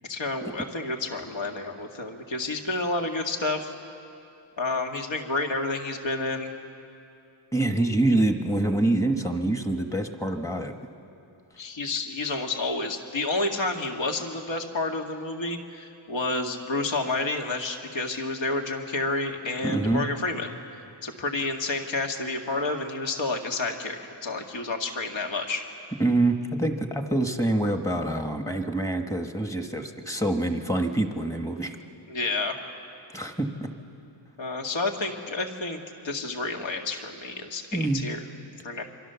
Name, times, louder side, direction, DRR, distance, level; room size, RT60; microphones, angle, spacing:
voice 1, 0.1-3.7 4.6-6.5 11.6-20.5 21.0-25.6 32.1-32.6 34.4-35.8 36.0-38.2 38.6-38.8, left 2 dB, 65° left, 3 dB, 2.1 m, -30 dB
voice 2, 7.5-10.7 19.6-20.0 26.0-31.8 33.1-33.7 37.7-38.1, right 2 dB, 5° left, 5 dB, 1.3 m, -26 dB
27.5 x 24.5 x 7.0 m, 2.7 s
wide cardioid pair, 175°, 49 cm